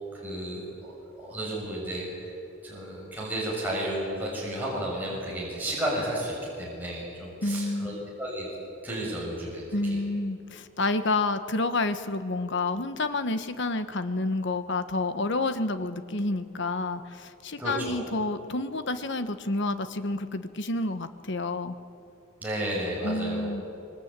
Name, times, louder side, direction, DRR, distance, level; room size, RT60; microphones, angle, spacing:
voice 1, 0.1-2.3 2.6-8.5 8.8-9.6 17.6-18.1 22.4-23.6, right 1 dB, 10° right, -5 dB, 6.7 m, -33 dB
voice 2, 7.4-8.0 9.7-21.8 23.0-23.6, left 2 dB, 60° left, 10 dB, 1.3 m, -29 dB
25.5 x 24.0 x 9.0 m, 2.7 s
head